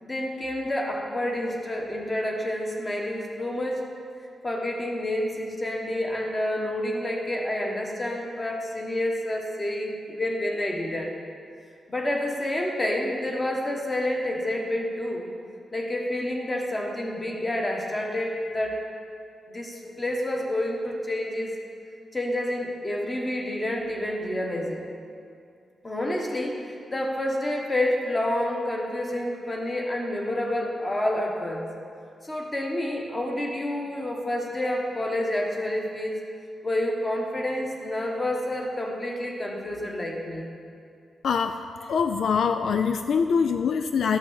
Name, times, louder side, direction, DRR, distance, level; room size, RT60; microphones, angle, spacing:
voice 1, 0.0-3.9 4.4-11.1 11.9-15.3 15.7-18.8 19.5-21.6 22.1-24.8 25.8-31.7 32.2-36.2 36.6-40.5, left 1 dB, 20° left, 1 dB, 1.2 m, -29 dB
voice 2, 41.2-44.2, left 6 dB, 65° left, 9 dB, 0.3 m, -24 dB
12.5 x 6.4 x 6.5 m, 2.4 s
wide cardioid pair, 170°, 0 cm